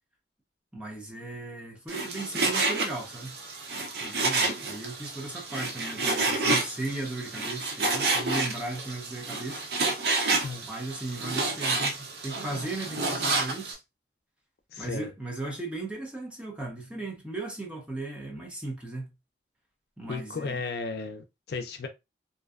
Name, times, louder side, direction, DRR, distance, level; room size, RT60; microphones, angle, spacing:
voice 1, 0.7-3.3 4.0-9.7 10.6-13.8 14.8-19.1 20.0-20.6, right 2 dB, 5° right, 0.5 m, -36 dB
Frying (food), 1.9-13.7, right 3 dB, 65° right, 0.6 m, -29 dB
voice 2, 14.7-15.1 20.1-21.9, left 4 dB, 70° left, 0.4 m, -34 dB
2.6 x 2.2 x 2.3 m
head